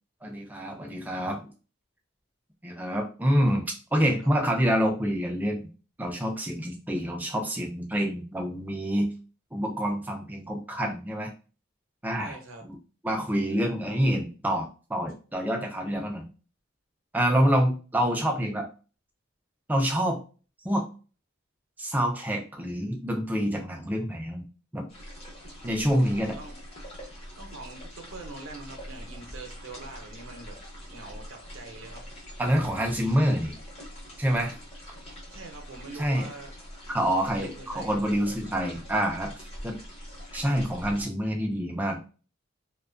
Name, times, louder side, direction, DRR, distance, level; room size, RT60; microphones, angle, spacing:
voice 1, 0.2-1.5 2.6-5.7 6.0-9.1 9.5-11.3 12.0-12.4 12.6-12.8 13.0-16.3 17.1-18.7 19.7-20.2 20.6-20.9 21.8-24.4 24.7-24.9 25.6-26.4 32.4-33.6 34.2-34.6 36.0-36.3 36.9-39.8 40.3-42.0, equal, 10° right, 2 dB, 0.4 m, -27 dB
voice 2, 12.2-12.7 26.4-26.6 27.4-30.6 30.9-32.1 35.3-36.5 37.0-37.9, right 2 dB, 70° right, 2 dB, 0.7 m, -44 dB
sound 1, 24.9-41.1, equal, 30° left, 0.8 m, -44 dB
2.5 x 2.2 x 2.4 m, 0.35 s
head